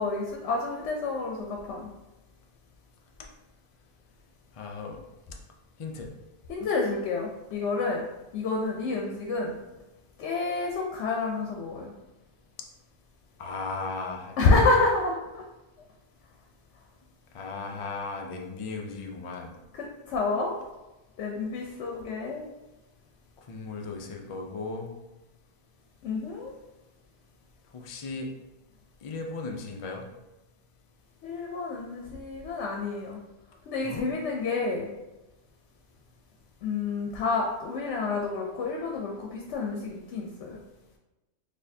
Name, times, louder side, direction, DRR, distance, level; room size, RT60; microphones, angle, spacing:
voice 1, 0.0-1.9 6.5-8.0 8.3-9.6 10.2-11.9 14.4-15.4 19.7-20.5 21.2-22.4 26.0-26.5 31.2-33.2 33.7-34.9 36.6-40.6, left 3 dB, 85° left, 0 dB, 0.9 m, -29 dB
voice 2, 4.5-5.0 5.8-6.1 13.4-14.6 17.3-19.6 23.5-24.9 27.7-28.3 29.0-30.0 33.8-34.1, left 3 dB, 60° left, 2 dB, 0.3 m, -36 dB
4.2 x 2.8 x 2.6 m, 1.0 s
omnidirectional pair, 1.2 m